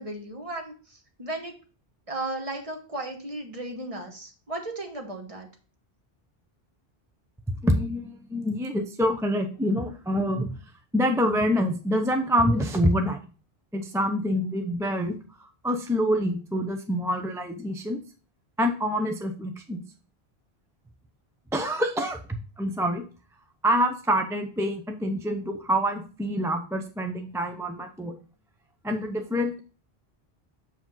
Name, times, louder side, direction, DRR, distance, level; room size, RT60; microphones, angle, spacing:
voice 1, 0.0-1.5 2.1-5.5, right 2 dB, 35° right, 3 dB, 1.3 m, -35 dB
voice 2, 7.6-10.5 10.9-13.2 13.7-18.0 18.6-19.8 21.5-23.0 23.6-28.2 28.8-29.6, equal, 5° right, 5 dB, 0.4 m, -26 dB
7.0 x 4.9 x 3.8 m, 0.37 s
omnidirectional pair, 1.1 m